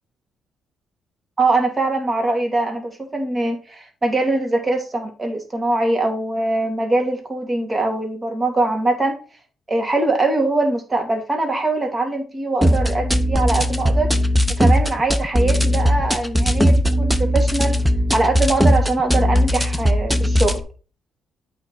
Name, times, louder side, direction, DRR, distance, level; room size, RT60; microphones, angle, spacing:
voice 1, 1.4-9.1 9.7-14.1 14.6-17.7 18.1-20.6, right 2 dB, 25° right, 3 dB, 2.4 m, -22 dB
sound 1, 12.6-20.6, equal, ahead, 0.9 m, -18 dB
8.7 x 5.3 x 4.2 m, 0.35 s
cardioid pair, 90°, 0 cm